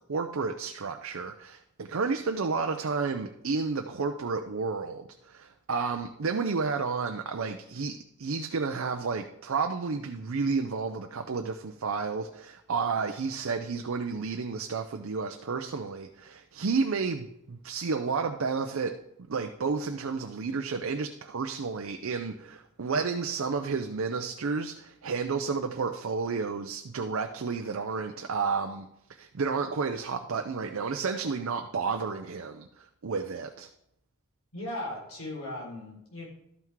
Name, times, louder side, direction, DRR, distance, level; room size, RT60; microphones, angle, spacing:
voice 1, 0.1-18.9 19.3-33.7, right 4 dB, 85° right, 5 dB, 0.6 m, -31 dB
voice 2, 34.5-36.3, left 1 dB, 90° left, -2 dB, 3.7 m, -37 dB
12.5 x 5.8 x 4.6 m, 0.79 s
head